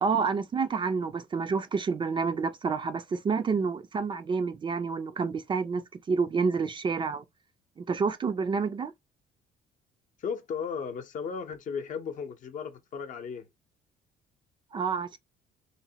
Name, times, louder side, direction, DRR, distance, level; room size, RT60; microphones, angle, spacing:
voice 1, 0.0-7.2 7.8-8.9 14.7-15.2, right 5 dB, 30° right, 0.4 m, -29 dB
voice 2, 10.2-13.5, left 6 dB, 50° left, 0.6 m, -35 dB
3.0 x 2.1 x 2.7 m
cardioid pair, 110°, 17 cm